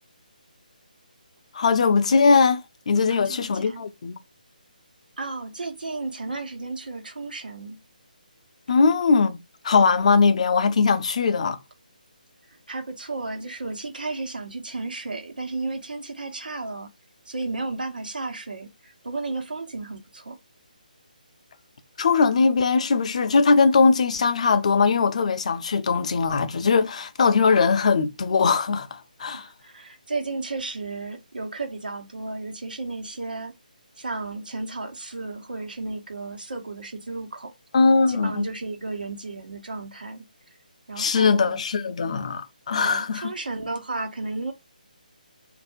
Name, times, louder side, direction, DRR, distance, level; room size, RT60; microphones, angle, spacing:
voice 1, 1.5-4.2 8.7-11.6 22.0-29.5 37.7-38.5 41.0-43.3, left 4 dB, 50° left, 0.5 m, -20 dB
voice 2, 3.1-3.8 5.2-7.8 12.5-16.9 17.2-20.4 29.3-33.5 34.0-37.5 38.1-40.2 40.9-41.6 42.8-44.5, right 3 dB, 75° right, 1.1 m, -33 dB
3.5 x 2.6 x 4.2 m
figure-of-eight pair, 150°, 5 cm